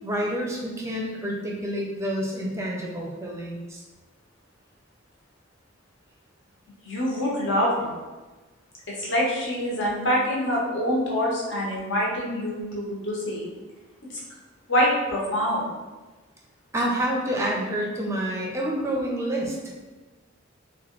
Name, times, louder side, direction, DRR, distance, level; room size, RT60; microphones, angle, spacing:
voice 1, 0.0-3.8 16.7-19.8, right 1 dB, 15° right, -2 dB, 0.5 m, -28 dB
voice 2, 6.8-7.9 9.0-13.5 14.7-15.7, equal, 65° left, -4 dB, 0.9 m, -25 dB
2.9 x 2.2 x 3.0 m, 1.2 s
head